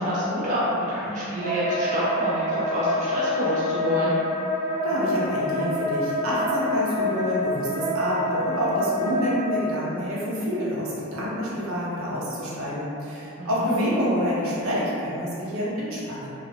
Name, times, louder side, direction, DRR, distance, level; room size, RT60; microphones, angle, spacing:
voice 1, 0.0-4.2 13.4-13.8, equal, 35° right, -9 dB, 0.4 m, -27 dB
Wind instrument woodwind instrument, 1.4-9.6, left 1 dB, 25° left, 0.7 m, -27 dB
voice 2, 4.8-16.3, equal, 70° right, -7 dB, 0.6 m, -27 dB
2.3 x 2.0 x 3.3 m, 2.8 s
head